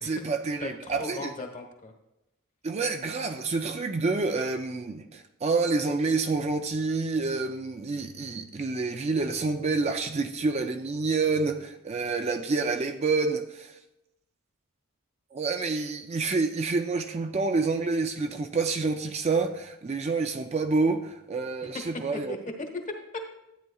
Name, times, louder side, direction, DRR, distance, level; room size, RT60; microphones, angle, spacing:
voice 1, 0.0-1.3 2.6-13.7 15.3-22.3, right 3 dB, 30° right, 6 dB, 0.4 m, -28 dB
voice 2, 0.6-1.9 21.6-21.7 22.1-23.4, left 2 dB, 35° left, 4 dB, 1.2 m, -37 dB
12.5 x 8.9 x 2.3 m, 0.92 s
head